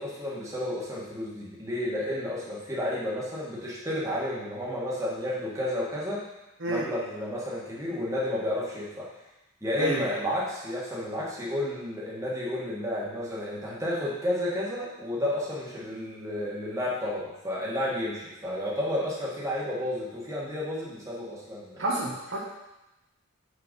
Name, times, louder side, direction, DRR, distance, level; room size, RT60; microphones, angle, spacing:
voice 1, 0.0-6.2 6.7-9.0 9.6-21.8, left 1 dB, 15° right, -6 dB, 1.7 m, -31 dB
voice 2, 21.8-22.4, right 2 dB, 60° right, -3 dB, 1.2 m, -29 dB
6.5 x 4.5 x 5.3 m, 0.95 s
head